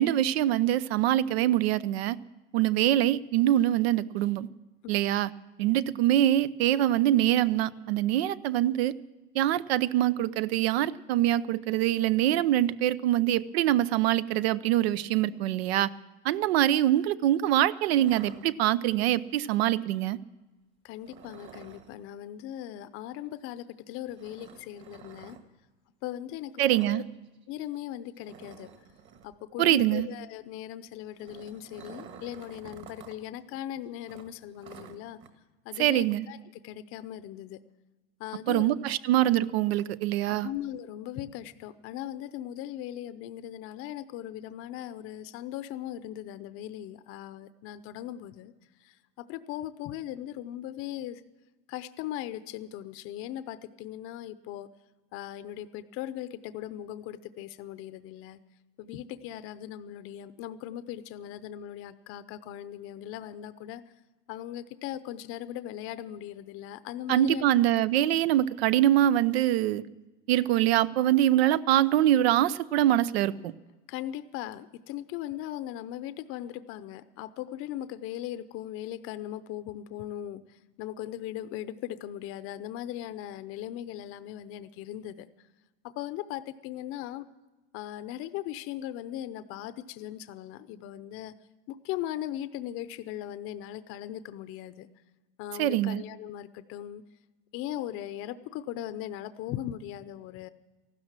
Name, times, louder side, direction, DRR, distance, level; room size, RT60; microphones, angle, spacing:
voice 1, 0.0-2.2 2.5-4.5 4.9-5.3 5.6-8.9 9.3-15.9 16.2-20.2 26.6-27.0 29.6-30.1 35.8-36.2 38.5-40.5 67.1-69.8 70.3-73.5 95.6-96.0, right 13 dB, 80° right, 17 dB, 0.7 m, -24 dB
sound 1, 18.0-19.0 21.0-22.0 24.2-25.4 26.6-27.0 27.3-27.4 27.8-27.9 28.2-29.3 30.9-33.2 33.5-33.6 34.1-35.3, right 7 dB, 40° right, 1.7 m, -49 dB
voice 2, 20.8-25.4 26.0-26.5 26.9-27.0 27.5-28.7 29.2-35.2 35.7-36.4 36.6-37.6 38.2-38.8 40.3-48.5 48.9-51.2 51.7-54.7 55.1-58.4 58.8-63.8 64.3-67.4 73.9-80.4 80.8-85.3 86.0-87.2 87.7-91.3 91.7-94.9 95.4-97.0 97.5-100.5, left 12 dB, 45° left, 14 dB, 0.7 m, -39 dB
15.0 x 12.5 x 7.4 m, 1.2 s
supercardioid pair, 130°, 31 cm